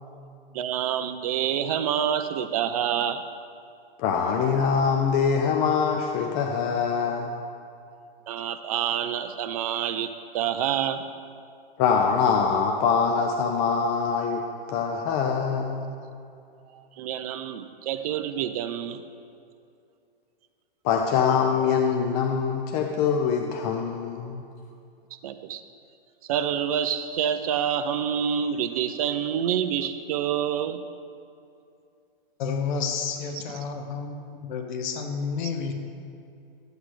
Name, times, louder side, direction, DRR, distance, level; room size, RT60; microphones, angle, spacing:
voice 1, 0.5-3.2 8.3-11.1 16.7-19.0 25.2-25.6 26.3-30.8, right 9 dB, 40° right, 10 dB, 0.4 m, -27 dB
voice 2, 4.0-7.4 11.8-14.4 14.7-15.9 20.8-24.4, left 6 dB, 20° left, 2 dB, 0.4 m, -24 dB
voice 3, 32.4-34.2 34.4-35.7, left 5 dB, 55° left, 5 dB, 1.2 m, -30 dB
13.0 x 8.2 x 3.2 m, 2.5 s
hypercardioid pair, 150°, 29 cm